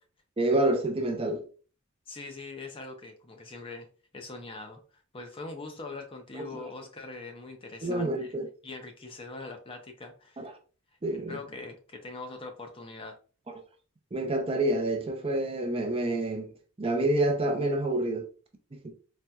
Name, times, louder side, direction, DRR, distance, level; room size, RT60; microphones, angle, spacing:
voice 1, 0.4-1.4 6.3-6.6 7.8-8.5 10.4-10.5 11.0-11.4 13.5-13.6 14.1-16.5 16.8-18.3 18.7-18.9, right 1 dB, 25° right, 0.5 m, -28 dB
voice 2, 2.1-3.9 4.1-4.8 5.1-8.3 8.6-10.5 11.3-13.2, left 3 dB, 25° left, 0.5 m, -42 dB
4.1 x 2.4 x 2.2 m
head